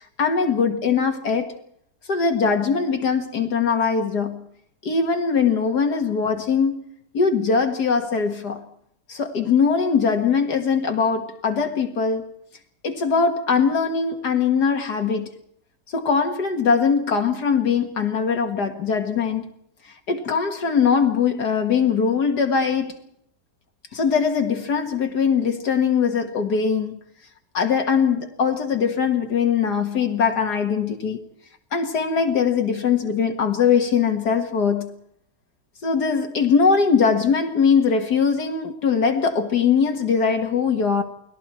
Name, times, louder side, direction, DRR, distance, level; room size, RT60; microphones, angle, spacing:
voice 1, 0.0-1.6 2.1-4.5 4.8-6.8 7.1-8.6 9.1-12.2 12.8-15.3 15.9-19.5 20.1-22.9 23.9-27.0 27.5-31.2 31.7-34.9 35.8-41.0, left 6 dB, 70° left, 2.2 m, -21 dB
29.5 x 20.5 x 4.4 m
omnidirectional pair, 1.8 m